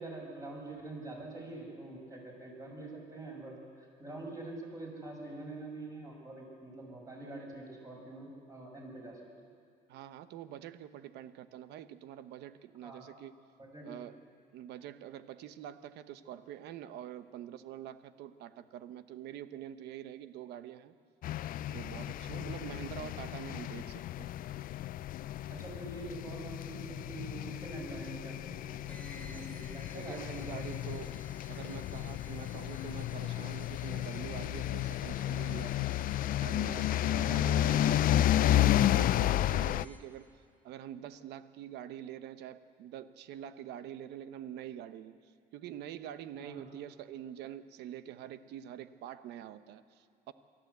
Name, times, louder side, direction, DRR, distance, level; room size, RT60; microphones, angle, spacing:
voice 1, 0.0-9.5 12.8-13.1 13.6-13.9 22.2-22.5 25.5-31.0 32.3-32.5 37.1-37.2 46.4-46.7, right 2 dB, 20° right, -1 dB, 6.5 m, -45 dB
voice 2, 9.9-13.4 13.8-14.2 14.5-20.9 21.7-24.3 29.9-31.2 31.5-35.9 36.4-40.3 40.6-50.3, right 11 dB, 85° right, 12 dB, 0.9 m, -45 dB
sound 1, 21.2-39.9, left 13 dB, 55° left, 0.4 m, -32 dB
sound 2, 28.9-40.3, left 2 dB, 10° left, 2.5 m, -56 dB
23.5 x 14.0 x 8.2 m, 2.3 s
cardioid pair, 110°, 17 cm